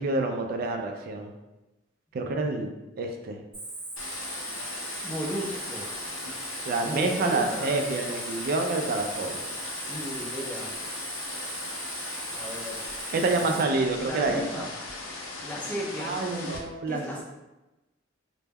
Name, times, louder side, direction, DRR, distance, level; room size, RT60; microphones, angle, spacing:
voice 1, 0.0-1.3 2.1-2.7 3.0-3.4 6.3-6.4 6.6-9.4 13.1-14.7 16.0-17.2, right 3 dB, 50° right, 4 dB, 0.3 m, -28 dB
Cricket, 3.5-13.6, right 2 dB, 25° right, 0.8 m, -38 dB
sound 1, 4.0-16.6, left 3 dB, 85° left, 0.5 m, -39 dB
voice 2, 5.0-5.9 6.8-7.8 9.9-10.7 12.3-12.9 13.2-13.6 14.0-14.6 15.4-17.2, equal, 5° left, -5 dB, 0.5 m, -35 dB
2.1 x 2.1 x 3.3 m, 1.0 s
head